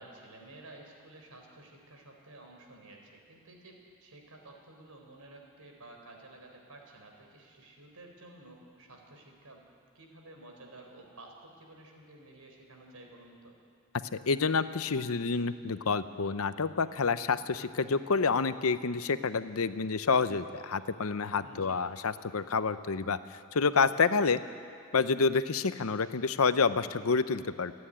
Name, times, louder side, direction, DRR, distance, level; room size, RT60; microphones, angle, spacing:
voice 1, 0.0-9.6 9.9-13.5 21.4-21.8, right 2 dB, 80° right, 2 dB, 4.0 m, -52 dB
voice 2, 14.3-24.4 24.9-27.7, left 4 dB, 65° left, 12 dB, 0.7 m, -28 dB
27.5 x 9.9 x 10.0 m, 2.2 s
head